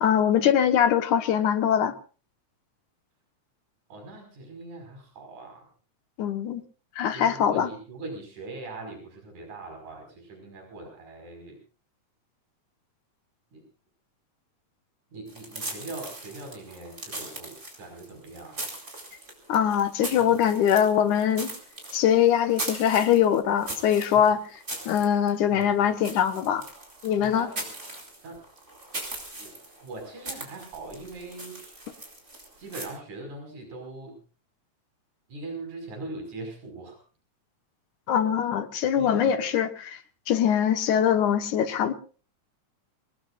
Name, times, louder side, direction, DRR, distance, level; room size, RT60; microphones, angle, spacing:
voice 1, 0.0-1.9 6.2-6.6 7.0-7.7 19.5-21.5 21.9-24.4 24.9-26.6 27.0-27.5 38.1-40.0 40.3-41.9, left 9 dB, 90° left, 2.9 m, -22 dB
voice 2, 3.9-5.7 7.1-11.6 13.5-13.6 15.1-18.6 20.2-20.3 24.1-24.2 25.5-25.8 27.2-27.7 28.2-28.4 29.4-29.6 29.8-31.8 32.6-34.2 35.3-37.0 39.0-39.5, right 2 dB, 75° right, 6.9 m, -41 dB
sound 1, 15.3-32.9, right 2 dB, 20° right, 4.6 m, -40 dB
26.5 x 19.5 x 2.5 m
omnidirectional pair, 3.4 m